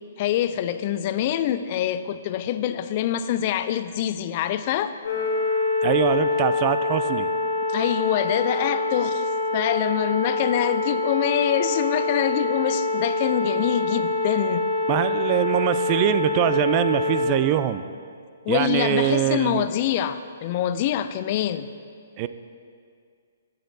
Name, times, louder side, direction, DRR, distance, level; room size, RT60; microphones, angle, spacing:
voice 1, 0.2-4.9 7.7-9.2 9.5-14.6 18.5-21.7, left 11 dB, 40° left, 12 dB, 0.4 m, -25 dB
sound 1, 5.0-17.2, left 2 dB, 75° left, 2.0 m, -25 dB
voice 2, 5.8-7.3 14.9-17.8 18.5-19.7 22.2-22.3, right 12 dB, 35° right, 12 dB, 0.3 m, -23 dB
15.5 x 6.5 x 2.7 m, 2.2 s
hypercardioid pair, 140°, 0 cm